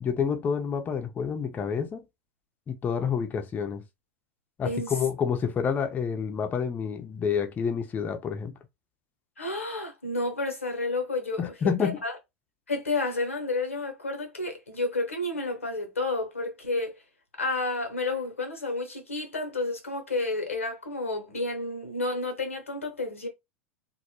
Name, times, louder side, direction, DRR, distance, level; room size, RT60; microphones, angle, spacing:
voice 1, 0.0-2.0 2.7-3.8 4.6-8.5 11.4-12.0, left 7 dB, 25° left, 0.5 m, -28 dB
voice 2, 4.6-4.9 9.4-11.4 11.8-12.2 12.7-17.0 17.4-23.3, left 2 dB, 90° left, 0.7 m, -30 dB
2.1 x 2.0 x 2.9 m
figure-of-eight pair, 85°, 7 cm